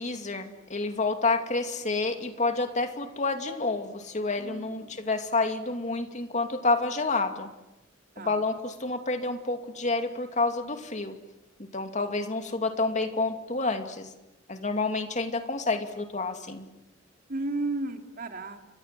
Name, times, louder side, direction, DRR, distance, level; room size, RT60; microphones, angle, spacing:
voice 1, 0.0-7.5 8.2-11.2 11.6-14.1 14.5-16.7, left 3 dB, 40° left, 6 dB, 2.6 m, -29 dB
voice 2, 4.4-5.0 8.2-8.4 17.3-18.6, right 2 dB, 50° right, 5 dB, 2.9 m, -33 dB
30.0 x 24.5 x 7.6 m, 0.93 s
head